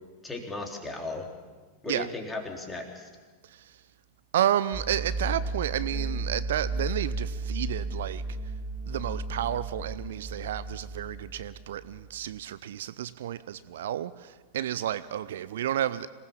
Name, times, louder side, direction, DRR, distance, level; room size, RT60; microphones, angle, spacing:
voice 1, 0.2-1.3 1.8-3.1, left 3 dB, 10° left, 3.8 m, -36 dB
voice 2, 3.4-3.8 4.3-8.2 8.9-16.1, right 11 dB, 60° right, 0.6 m, -31 dB
sound 1, 4.7-12.1, right 2 dB, 25° right, 2.4 m, -34 dB
26.0 x 18.5 x 7.2 m
figure-of-eight pair, 90°, 0 cm